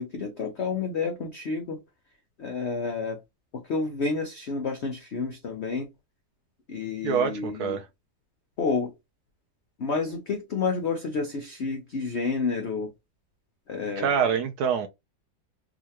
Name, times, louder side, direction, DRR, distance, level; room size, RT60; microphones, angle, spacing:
voice 1, 0.0-1.8 2.4-3.2 3.5-5.9 6.7-7.8 8.6-8.9 9.8-12.9 13.7-14.1, left 4 dB, 80° left, 0.6 m, -30 dB
voice 2, 7.0-7.9 14.0-14.9, right 7 dB, 75° right, 0.9 m, -25 dB
3.7 x 2.5 x 2.8 m
omnidirectional pair, 2.0 m